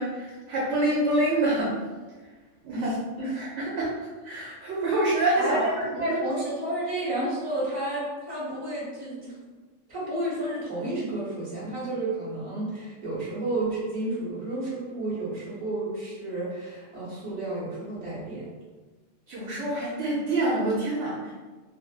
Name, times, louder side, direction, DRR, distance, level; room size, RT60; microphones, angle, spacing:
voice 1, 0.0-1.8 2.6-2.9 3.3-5.6 5.9-6.2 19.3-21.3, right 2 dB, 80° right, -6 dB, 0.9 m, -26 dB
voice 2, 2.7-3.3 5.3-9.3 9.9-18.4, right 1 dB, 30° right, -9 dB, 1.1 m, -31 dB
2.5 x 2.4 x 2.4 m, 1.3 s
omnidirectional pair, 1.2 m